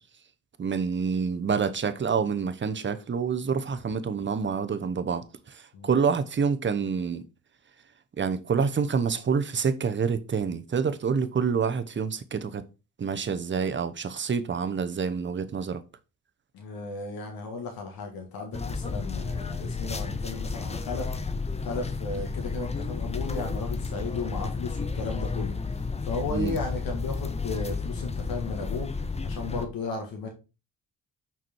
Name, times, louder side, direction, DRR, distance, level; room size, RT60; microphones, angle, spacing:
voice 1, 0.6-5.2 5.5-7.2 8.2-12.6 13.0-15.8 26.3-26.5, right 6 dB, 35° right, 0.9 m, -27 dB
voice 2, 16.5-21.1 21.6-25.5 26.0-28.9 29.2-30.3, left 3 dB, 85° left, 1.7 m, -35 dB
sound 1, 18.5-29.7, left 4 dB, 20° left, 0.7 m, -32 dB
5.8 x 4.7 x 4.4 m
cardioid pair, 80°, 35 cm